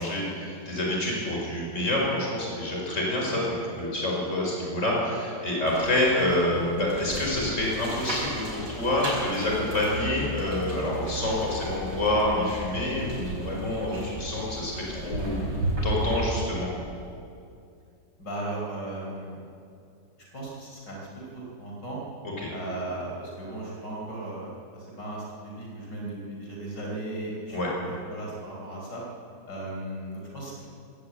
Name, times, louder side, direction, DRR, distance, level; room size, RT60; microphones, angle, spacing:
voice 1, 0.0-15.4 15.8-16.7 22.2-22.5 27.5-27.7, left 1 dB, 45° left, -3 dB, 5.6 m, -27 dB
sound 1, 5.7-16.2, right 1 dB, 80° right, 5.9 m, -34 dB
voice 2, 18.2-19.4 20.2-21.0 21.3-22.0 22.5-27.6 28.1-29.0 29.4-30.6, right 1 dB, 90° left, -3 dB, 5.1 m, -36 dB
18.5 x 17.5 x 8.4 m, 2.5 s
omnidirectional pair, 1.8 m